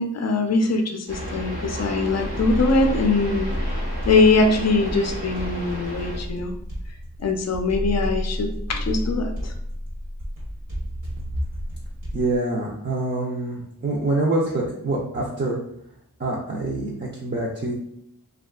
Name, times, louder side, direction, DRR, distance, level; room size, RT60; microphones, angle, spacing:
voice 1, 0.0-6.5 7.2-9.5, left 3 dB, 45° left, 4 dB, 0.4 m, -22 dB
sound 1, 1.1-6.2, right 1 dB, 85° right, 0.9 m, -33 dB
sound 2, 2.2-12.4, equal, 55° right, 1.0 m, -31 dB
voice 2, 12.1-15.6 16.2-17.7, right 2 dB, 30° right, -5 dB, 0.5 m, -25 dB
2.7 x 2.4 x 2.3 m, 0.72 s
wide cardioid pair, 45°, 38 cm